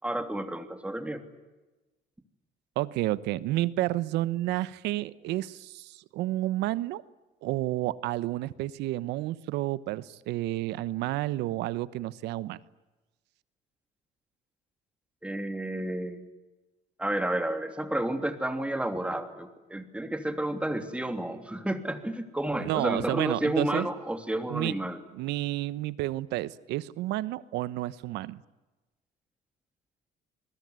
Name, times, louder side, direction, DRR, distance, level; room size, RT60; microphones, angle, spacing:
voice 1, 0.0-1.2 15.2-16.3 17.0-25.0, right 1 dB, 5° right, 8 dB, 3.1 m, -31 dB
voice 2, 2.8-7.0 7.4-12.6 22.6-23.9 24.5-24.7 25.1-28.4, right 16 dB, 90° right, 18 dB, 1.1 m, -30 dB
27.5 x 21.0 x 9.5 m, 1.1 s
cardioid pair, 110°, 17 cm